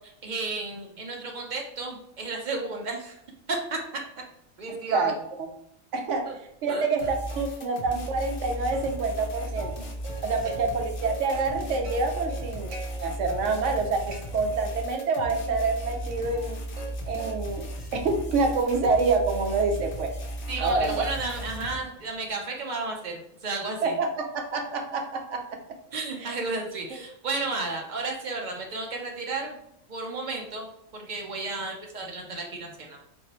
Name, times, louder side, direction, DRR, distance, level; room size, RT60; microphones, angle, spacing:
voice 1, 0.0-3.2 3.5-3.8 4.6-5.1 6.3-6.4 6.7-6.8 10.4-10.5 20.5-24.0 25.9-29.6 29.9-30.7 30.9-33.0, right 3 dB, 45° right, 1 dB, 0.6 m, -33 dB
voice 2, 4.9-5.5 5.9-6.3 6.6-9.7 10.2-16.6 17.1-20.1 20.6-21.1 23.8-25.6 26.2-26.3 26.9-27.0, right 3 dB, 70° right, 4 dB, 0.9 m, -27 dB
sound 1, 7.0-21.8, equal, 60° left, 0.9 m, -36 dB
Plucked string instrument, 7.3-7.9 8.2-8.3 8.7-10.7 11.0-12.9 13.3-13.8 14.1-15.1 15.5-16.9 17.2-17.7 18.1-22.3, right 5 dB, 85° right, 1.3 m, -43 dB
3.8 x 2.7 x 3.0 m, 0.75 s
omnidirectional pair, 1.4 m